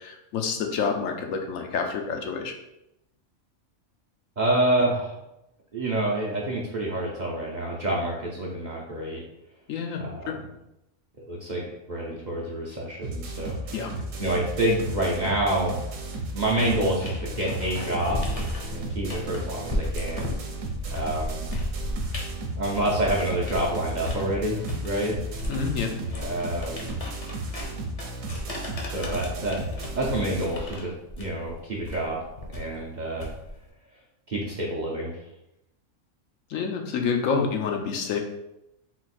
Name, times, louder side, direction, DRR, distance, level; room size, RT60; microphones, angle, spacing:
voice 1, 0.0-2.5 9.7-10.4 13.7-13.9 25.5-25.9 36.5-38.2, left 5 dB, 80° left, 3 dB, 1.0 m, -28 dB
voice 2, 4.4-5.1 5.7-9.2 10.0-10.3 11.3-13.7 14.2-15.7 16.3-18.2 18.7-20.3 20.9-21.4 22.6-25.2 26.2-26.9 28.8-29.6 30.0-32.2 32.5-33.3 34.3-35.1, right 1 dB, 45° right, -3 dB, 0.6 m, -27 dB
sound 1, 13.0-30.5, right 2 dB, 75° right, 1.0 m, -34 dB
sound 2, 16.3-23.7 24.0-33.7, left 1 dB, 35° left, 0.6 m, -35 dB
4.0 x 2.4 x 4.2 m, 0.86 s
omnidirectional pair, 1.4 m